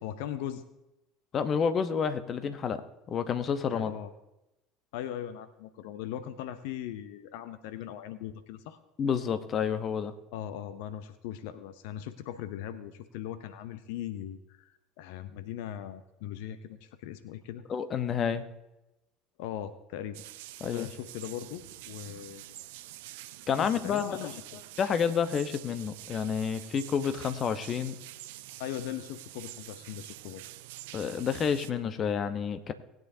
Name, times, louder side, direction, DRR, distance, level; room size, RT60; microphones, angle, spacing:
voice 1, 0.0-0.6 3.7-4.1 4.9-8.8 10.3-17.6 19.4-20.2 20.7-22.6 23.6-24.6 28.6-30.4, left 11 dB, 65° left, 12 dB, 0.7 m, -39 dB
voice 2, 1.3-3.9 9.0-10.1 17.7-18.4 20.6-20.9 23.5-24.2 24.8-28.0 30.9-32.7, left 7 dB, 40° left, 10 dB, 1.0 m, -29 dB
sound 1, 20.1-31.7, right 16 dB, 70° right, 0.5 m, -47 dB
19.5 x 9.2 x 2.8 m, 0.95 s
hypercardioid pair, 70°, 0 cm